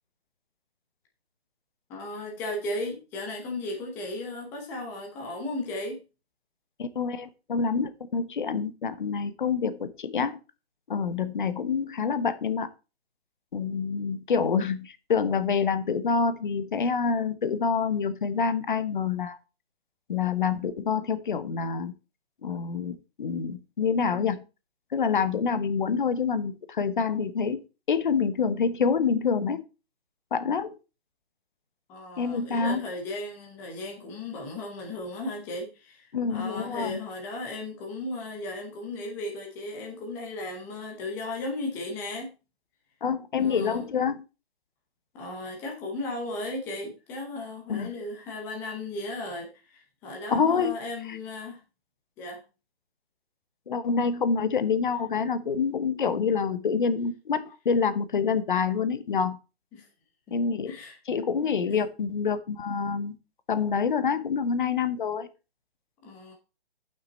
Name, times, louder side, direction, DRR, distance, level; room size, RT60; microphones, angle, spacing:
voice 1, 1.9-6.0 31.9-42.4 43.4-43.9 45.1-51.6 52.2-52.4 59.7-59.9 60.6-61.0 61.7-61.8 66.0-66.3, left 2 dB, 5° left, 0.9 m, -36 dB
voice 2, 6.8-10.4 10.9-12.7 13.5-19.4 20.1-21.9 22.4-24.4 24.9-27.6 27.9-29.6 30.3-30.7 32.2-32.8 36.1-37.0 43.0-44.2 47.7-47.9 50.3-50.7 51.1-51.2 53.7-59.4 60.3-60.7 61.1-63.2 63.5-65.3, left 5 dB, 45° left, 1.0 m, -27 dB
11.0 x 5.8 x 4.1 m
hypercardioid pair, 165°, 33 cm